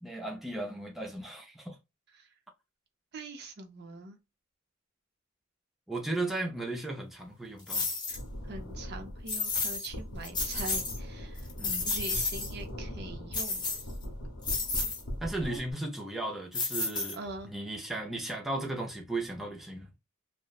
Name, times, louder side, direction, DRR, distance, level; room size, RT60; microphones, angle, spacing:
voice 1, 0.0-1.8 5.9-7.9 11.6-11.9 15.2-17.2 17.4-19.9, right 2 dB, ahead, 0.4 m, -36 dB
voice 2, 3.1-4.2 8.1-8.2 8.4-11.5 11.8-13.7 15.4-15.6 17.1-17.5, right 3 dB, 50° right, 0.5 m, -43 dB
sound 1, 7.7-8.2 9.3-9.9 10.2-11.0 11.4-12.5 13.3-14.0 14.4-15.0 16.5-17.4, left 3 dB, 20° left, 0.8 m, -32 dB
sound 2, 8.1-15.7, equal, 70° left, 0.7 m, -41 dB
2.8 x 2.1 x 2.3 m
head